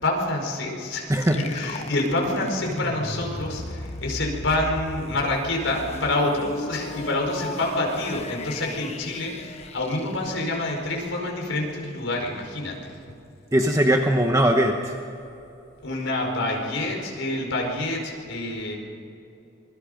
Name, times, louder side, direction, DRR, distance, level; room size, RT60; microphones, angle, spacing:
voice 1, 0.0-13.0 15.8-18.8, left 2 dB, 75° left, 0 dB, 5.0 m, -27 dB
sound 1, 1.1-11.0, left 2 dB, 35° left, 1.0 m, -36 dB
voice 2, 13.5-14.9, equal, 15° right, 3 dB, 1.1 m, -20 dB
26.0 x 22.5 x 5.2 m, 2.8 s
head